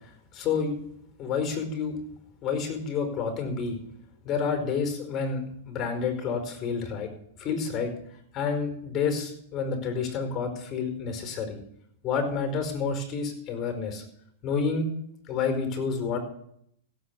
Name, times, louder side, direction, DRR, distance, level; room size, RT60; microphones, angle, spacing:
voice 1, 0.3-0.7 1.2-2.0 2.4-3.8 4.2-7.1 7.4-7.9 8.3-11.6 12.0-14.0 14.4-14.8 15.3-16.2, left 5 dB, 35° left, 6 dB, 5.0 m, -29 dB
16.0 x 7.7 x 8.3 m, 0.71 s
hypercardioid pair, 115°, 0 cm